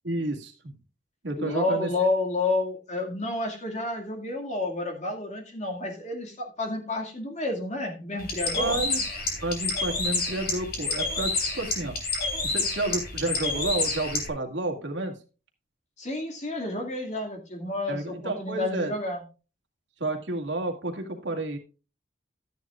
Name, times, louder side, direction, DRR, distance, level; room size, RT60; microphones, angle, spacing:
voice 1, 0.0-0.7 1.2-1.9 8.6-9.0 9.4-12.0 12.4-15.1 17.9-19.0 20.0-21.6, right 2 dB, 70° right, 2 dB, 2.0 m, -30 dB
voice 2, 1.4-8.8 16.0-19.2, left 2 dB, 35° left, 2 dB, 2.2 m, -30 dB
Bird, 8.2-14.3, left 3 dB, 55° left, 2.9 m, -29 dB
13.0 x 9.6 x 2.5 m, 0.34 s
head